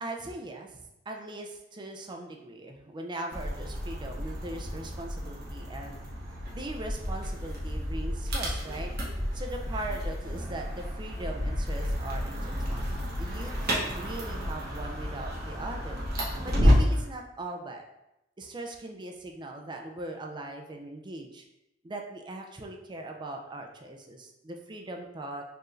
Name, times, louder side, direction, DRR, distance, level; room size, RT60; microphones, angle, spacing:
voice 1, 0.0-6.0 6.5-8.9 9.3-16.2 16.4-17.8 18.4-21.4 21.8-25.4, right 2 dB, 25° right, 2 dB, 0.4 m, -40 dB
sound 1, 3.3-17.0, equal, 55° right, 1.1 m, -30 dB
4.5 x 3.1 x 2.5 m, 0.89 s
head